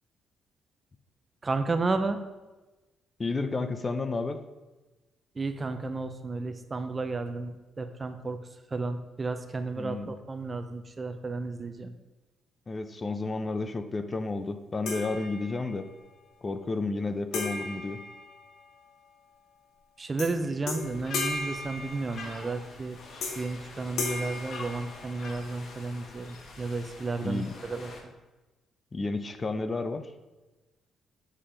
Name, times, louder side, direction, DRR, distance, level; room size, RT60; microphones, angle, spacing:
voice 1, 1.4-2.2 5.4-8.4 8.7-11.9 20.0-23.0 23.2-28.1, right 3 dB, 30° right, 8 dB, 0.7 m, -32 dB
voice 2, 3.2-4.4 9.8-10.1 12.7-15.9 16.4-18.0 27.2-27.5 28.9-30.1, left 3 dB, 30° left, 9 dB, 0.5 m, -31 dB
sound 1, 14.9-15.8 17.3-18.9 20.2-20.4 20.7-22.5 23.2-23.6 24.0-25.4, left 3 dB, 75° left, 1.3 m, -36 dB
sound 2, 20.8-28.0, left 3 dB, 60° left, 1.3 m, -46 dB
7.3 x 4.3 x 5.0 m, 1.1 s
cardioid pair, 90°, 0 cm